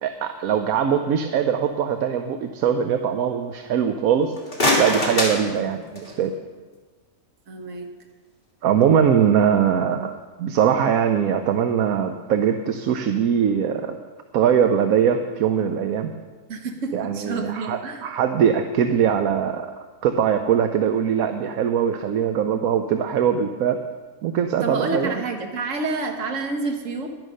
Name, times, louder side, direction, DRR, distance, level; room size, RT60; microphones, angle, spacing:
voice 1, 0.0-4.3 4.8-6.3 8.6-10.1 10.4-14.0 14.3-16.1 16.9-19.7 20.0-23.8 24.2-25.1, right 8 dB, 85° right, 7 dB, 1.1 m, -21 dB
sound 1, 4.2-6.3, left 1 dB, 35° left, 2.6 m, -24 dB
voice 2, 7.5-7.9 16.5-18.1 24.6-27.1, right 3 dB, 65° right, 4 dB, 1.5 m, -28 dB
11.0 x 11.0 x 6.5 m, 1.4 s
omnidirectional pair, 1.5 m